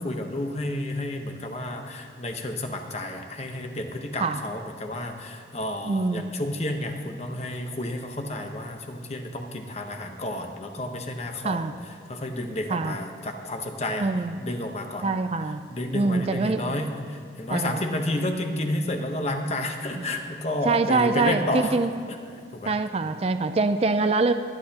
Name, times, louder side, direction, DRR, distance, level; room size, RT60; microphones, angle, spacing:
voice 1, 0.0-11.7 12.1-14.1 14.4-15.0 15.7-21.8 22.5-22.7, left 1 dB, 35° left, 4 dB, 1.0 m, -31 dB
voice 2, 5.8-6.2 11.4-11.7 12.7-13.0 14.0-14.4 15.0-15.6 15.9-16.8 17.5-17.8 20.7-21.9 22.7-24.3, right 3 dB, 35° right, 9 dB, 0.4 m, -24 dB
23.5 x 9.9 x 2.9 m, 2.3 s
head